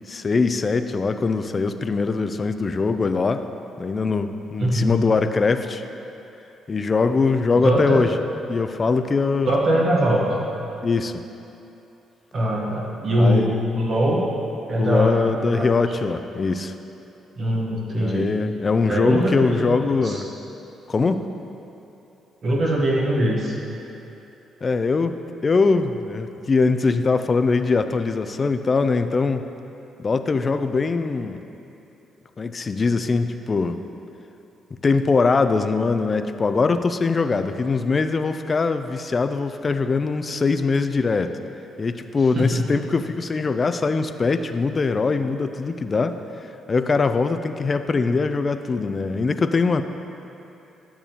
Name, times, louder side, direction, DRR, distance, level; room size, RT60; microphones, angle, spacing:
voice 1, 0.1-3.4 3.8-5.8 6.7-8.1 8.5-9.5 10.8-11.2 13.2-13.7 14.8-16.7 18.0-20.3 20.9-21.2 24.6-25.2 25.4-29.4 30.0-31.4 32.4-33.8 34.8-41.4 41.8-46.2 46.7-49.8, left 4 dB, 35° left, 9 dB, 0.4 m, -22 dB
voice 2, 4.6-5.0 7.6-8.0 9.5-10.4 12.3-14.2 14.7-15.9 17.4-18.3 18.9-20.2 22.4-23.6 42.2-42.7, right 1 dB, 50° right, -2 dB, 1.1 m, -22 dB
10.5 x 7.0 x 2.9 m, 2.9 s
cardioid pair, 90°, 0 cm